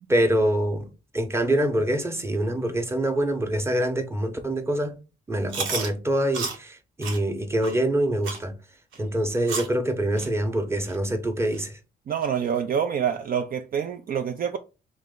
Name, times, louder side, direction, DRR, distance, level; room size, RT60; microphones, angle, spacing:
voice 1, 0.1-5.0 5.3-8.6 9.0-11.7, right 1 dB, 15° right, 0.8 m, -25 dB
Chewing mastication, 5.5-5.9 6.3-6.6 7.0-7.2 7.6-7.7 8.2-8.4 8.9-9.0 9.5-9.7 10.2-10.3 10.9-11.0 11.5-11.6 12.2-12.3, right 5 dB, 85° right, 1.2 m, -31 dB
voice 2, 12.1-14.6, right 8 dB, 45° right, 0.4 m, -26 dB
3.2 x 3.1 x 3.8 m
cardioid pair, 90°, 20 cm